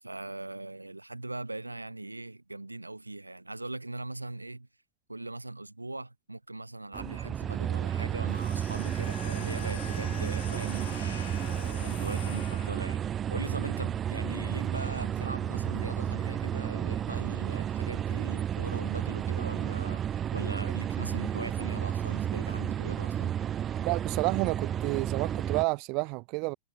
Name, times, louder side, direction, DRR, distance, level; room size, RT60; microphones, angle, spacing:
voice 1, 0.0-4.7 5.1-11.3 11.8-23.3, right 2 dB, 85° right, 1.7 m, -40 dB
sound 1, 6.9-25.6, right 9 dB, 25° right, 1.3 m, -32 dB
sound 2, 8.3-13.1, left 11 dB, 60° left, 7.4 m, -45 dB
voice 2, 23.9-26.6, right 30 dB, 45° right, 0.3 m, -30 dB
figure-of-eight pair, 90°, 0 cm